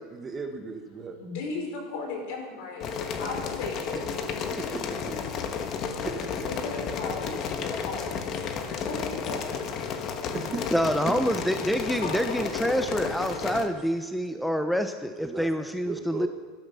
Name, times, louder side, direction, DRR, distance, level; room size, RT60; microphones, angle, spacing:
voice 1, 0.2-1.2 4.5-4.6 6.0-6.3 10.3-10.7 15.2-16.3, right 4 dB, 20° right, 5 dB, 1.4 m, -36 dB
voice 2, 1.2-2.8 3.2-4.6 5.0-5.4 6.5-9.6 10.2-10.3 11.9-12.4 16.0-16.1, left 3 dB, 70° left, 1 dB, 4.9 m, -37 dB
sound 1, 2.8-13.7, left 6 dB, 40° left, 1.3 m, -32 dB
voice 3, 10.7-16.3, equal, ahead, 7 dB, 0.6 m, -27 dB
18.0 x 12.5 x 5.7 m, 1.4 s
supercardioid pair, 150°, 0 cm